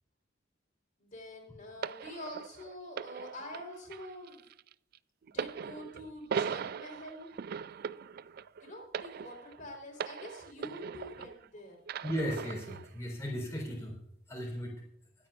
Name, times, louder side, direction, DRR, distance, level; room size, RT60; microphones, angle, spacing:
voice 1, 1.0-4.4 5.2-7.3 8.6-11.8, left 1 dB, 45° left, 0 dB, 4.0 m, -46 dB
sound 1, 1.8-11.5 11.9-12.9 13.7-13.8, right 6 dB, 55° right, 0.3 m, -40 dB
voice 2, 12.0-14.0 14.3-14.7, equal, 15° left, -3 dB, 4.0 m, -36 dB
24.0 x 8.9 x 2.5 m, 0.75 s
head